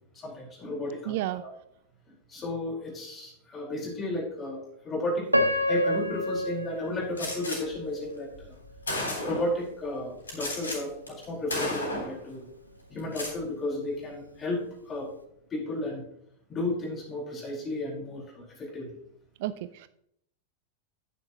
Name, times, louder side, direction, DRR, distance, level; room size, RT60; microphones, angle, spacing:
voice 1, 0.1-1.5 2.1-5.3 5.7-8.5 9.2-12.5 12.9-15.1 15.5-16.0 16.5-19.0, left 1 dB, 20° left, -3 dB, 4.5 m, -33 dB
voice 2, 1.0-1.4 19.4-19.9, right 14 dB, 50° right, 15 dB, 0.4 m, -31 dB
Piano, 5.3-8.3 8.9-9.0 9.7-9.9, equal, 85° right, 0.8 m, -28 dB
Gunshot gunfire, 7.2-7.6 8.4-8.5 8.9-9.5 10.3-10.8 11.1-11.2 11.5-12.2 13.0-13.4, left 1 dB, 75° left, 3.5 m, -32 dB
10.0 x 9.7 x 3.0 m, 0.72 s
figure-of-eight pair, 90°, 0 cm